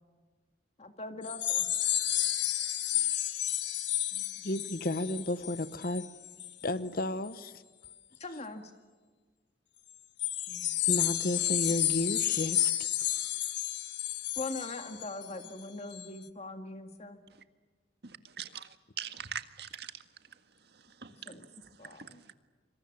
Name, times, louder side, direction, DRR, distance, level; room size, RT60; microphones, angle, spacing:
voice 1, 0.8-1.7 4.1-4.5 6.4-6.5 8.2-8.6 10.5-11.2 14.4-17.2 21.3-21.5 21.8-22.2, left 2 dB, 40° left, 2.0 m, -42 dB
sound 1, 1.2-6.7 7.0-7.3 7.8-7.9 10.2-15.5 15.9-16.1, left 12 dB, 90° left, 1.6 m, -31 dB
voice 2, 4.4-6.1 6.6-7.5 10.9-12.7, left 1 dB, 55° left, 1.1 m, -32 dB
voice 3, 18.0-20.0 20.7-21.4 21.6-22.1, right 8 dB, 65° right, 1.8 m, -43 dB
26.5 x 26.0 x 7.4 m
head